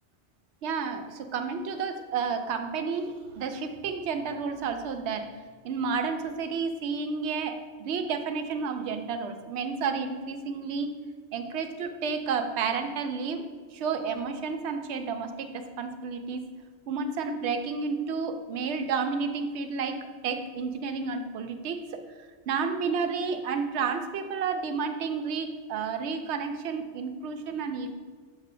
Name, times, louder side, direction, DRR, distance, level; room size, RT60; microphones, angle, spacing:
voice 1, 0.6-5.3 5.6-10.9 11.3-13.4 13.7-16.4 16.9-22.0 22.5-27.9, right 5 dB, 70° right, 7 dB, 0.9 m, -31 dB
6.7 x 3.2 x 5.2 m, 1.5 s
omnidirectional pair, 1.2 m